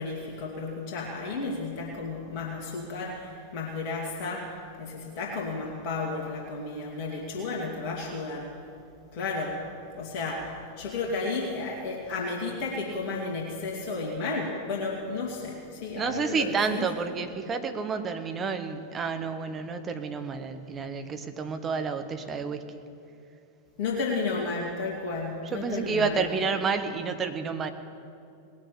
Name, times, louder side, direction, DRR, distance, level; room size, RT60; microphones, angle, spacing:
voice 1, 0.0-4.5 4.8-8.5 9.1-9.6 9.9-16.9 23.8-26.2, left 3 dB, 45° left, -2 dB, 2.2 m, -33 dB
voice 2, 15.9-22.6 25.5-27.7, right 5 dB, 25° right, 7 dB, 1.1 m, -30 dB
19.5 x 6.4 x 8.5 m, 2.5 s
figure-of-eight pair, 90°, 0 cm